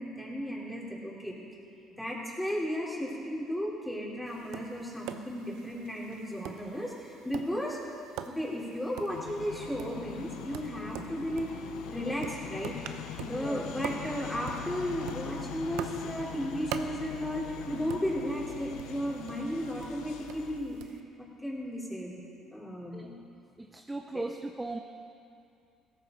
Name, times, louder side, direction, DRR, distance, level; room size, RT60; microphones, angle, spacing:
voice 1, 0.0-1.4 2.0-7.8 8.2-11.5 11.9-12.7 13.3-20.8 21.2-22.1 22.5-23.1 24.1-24.2, equal, 5° left, -5 dB, 3.9 m, -34 dB
Tap, 4.3-21.0, right 10 dB, 80° right, 0.7 m, -45 dB
sound 1, 9.1-20.6, left 8 dB, 80° left, 0.8 m, -42 dB
voice 2, 13.2-13.7 22.9-23.1 23.6-24.8, right 2 dB, 15° right, 5 dB, 0.7 m, -38 dB
17.0 x 14.0 x 4.0 m, 2.6 s
supercardioid pair, 85°, 0 cm